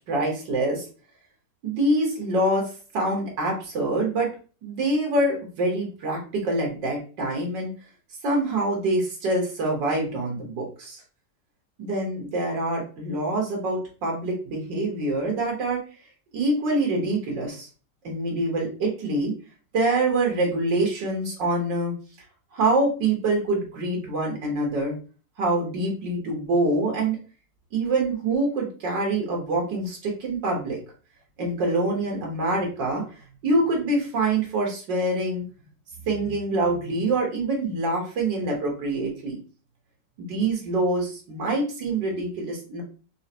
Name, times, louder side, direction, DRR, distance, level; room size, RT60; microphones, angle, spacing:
voice 1, 0.1-0.9 1.6-4.3 4.6-7.7 8.2-11.0 11.8-15.8 16.3-17.7 18.0-19.3 19.7-21.9 22.5-24.9 25.4-27.2 27.7-30.8 31.4-33.0 33.4-35.5 36.0-39.4 40.2-42.8, right 2 dB, 90° right, 0 dB, 2.1 m, -25 dB
4.8 x 3.4 x 2.9 m, 0.37 s
omnidirectional pair, 1.9 m